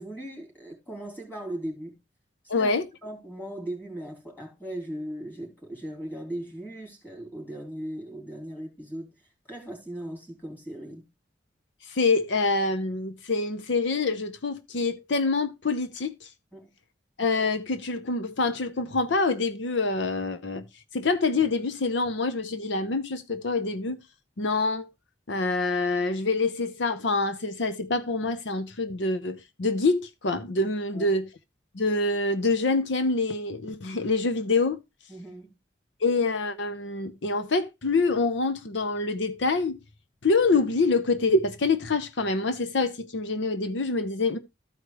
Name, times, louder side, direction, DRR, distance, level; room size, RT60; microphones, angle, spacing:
voice 1, 0.0-1.9 2.6-2.7 3.0-9.1 9.5-11.0 16.5-16.7 30.9-31.1 35.1-35.5, right 1 dB, 10° left, 3.2 m, -38 dB
voice 2, 2.5-2.8 11.9-16.3 17.2-20.6 20.9-24.0 24.4-24.9 25.3-31.3 31.7-34.8 36.0-39.8 40.2-44.4, left 3 dB, 75° left, 0.7 m, -26 dB
13.5 x 4.8 x 3.2 m
head